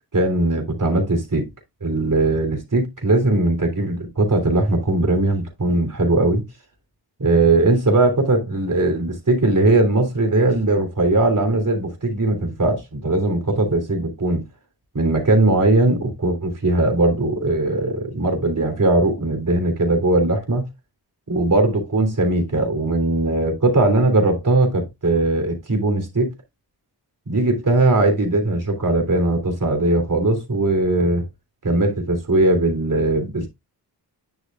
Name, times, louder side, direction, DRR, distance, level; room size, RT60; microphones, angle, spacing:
voice 1, 0.1-1.5 1.8-6.4 7.2-14.5 15.0-20.7 21.3-26.3 27.3-31.3 31.6-33.5, right 2 dB, 45° right, 3.5 m, -19 dB
11.0 x 6.3 x 2.5 m
cardioid pair, 50°, 44 cm